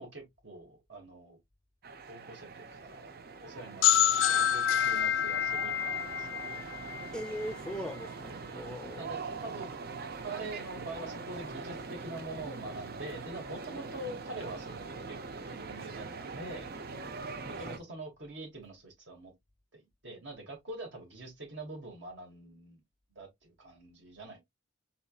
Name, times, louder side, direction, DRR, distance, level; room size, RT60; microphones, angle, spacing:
voice 1, 0.0-1.4 2.1-3.1 3.4-6.6 8.3-8.4 9.0-9.7 10.2-16.7 17.4-19.3 19.7-22.8 23.2-24.4, right 2 dB, 70° right, 2.2 m, -45 dB
sound 1, 1.8-17.8, right 4 dB, 55° right, 0.6 m, -42 dB
sound 2, 3.8-7.5, left 10 dB, 85° left, 0.4 m, -27 dB
voice 2, 7.1-9.1 17.5-17.8, equal, 5° left, 0.6 m, -40 dB
4.2 x 4.0 x 2.4 m
head